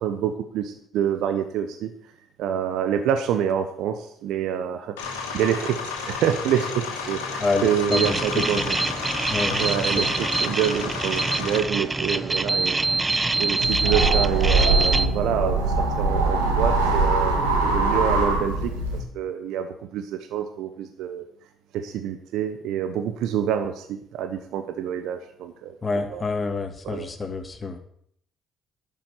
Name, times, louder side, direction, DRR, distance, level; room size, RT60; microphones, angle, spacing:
voice 1, 0.0-1.9 2.4-4.9 5.3-8.8 9.6-10.0 10.4-12.8 13.4-18.7 19.1-19.7 19.9-21.2 21.7-26.2 26.9-27.1, right 9 dB, 70° right, 7 dB, 1.0 m, -27 dB
sound 1, 5.0-11.6, left 5 dB, 80° left, 2.2 m, -32 dB
voice 2, 7.4-8.7 9.3-10.1 25.8-27.8, left 3 dB, 30° left, 5 dB, 2.4 m, -28 dB
sound 2, 7.9-15.1, right 3 dB, 25° right, 0.9 m, -25 dB
sound 3, 13.6-19.0, right 3 dB, 90° right, 2.1 m, -22 dB
12.0 x 7.3 x 8.1 m, 0.66 s
hypercardioid pair, 50°, 0 cm